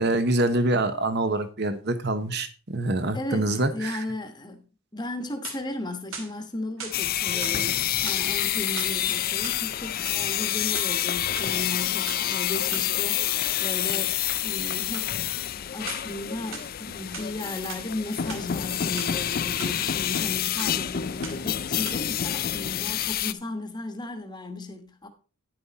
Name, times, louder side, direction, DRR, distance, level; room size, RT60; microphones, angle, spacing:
voice 1, 0.0-4.0, right 2 dB, 50° right, 1.0 m, -25 dB
voice 2, 3.1-4.6 4.9-14.2 14.4-15.2 15.7-25.1, left 2 dB, 20° left, 1.2 m, -35 dB
sound 1, 5.2-5.8 6.1-7.0 7.4-7.6 8.0-9.0 9.3-10.2 10.6-11.5 12.1-12.2 12.7-12.9 14.9-15.1 15.9-16.2 16.5-17.3 17.7-17.9 18.2-19.1 19.6-19.7 20.1-20.3 20.6-20.9 21.2-21.5 21.8-22.0, right 5 dB, 65° right, 2.5 m, -40 dB
sound 2, 6.9-23.3, left 11 dB, 40° left, 0.4 m, -28 dB
10.5 x 7.7 x 4.1 m
head